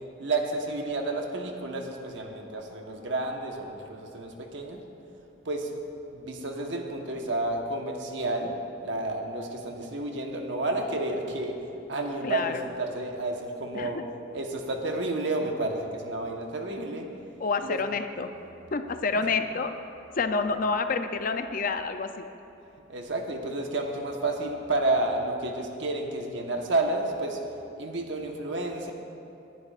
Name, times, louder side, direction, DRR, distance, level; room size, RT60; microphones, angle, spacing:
voice 1, 0.2-4.8 5.4-5.7 6.1-8.6 8.8-11.6 11.9-14.0 14.3-17.1 17.6-17.8 19.1-19.3 22.9-27.4 27.8-28.9, right 2 dB, 65° right, 2 dB, 1.2 m, -30 dB
voice 2, 12.2-12.6 13.7-14.1 17.4-18.3 18.7-19.7 20.2-22.2, left 4 dB, 45° left, 8 dB, 0.5 m, -28 dB
19.0 x 11.0 x 2.5 m, 2.8 s
head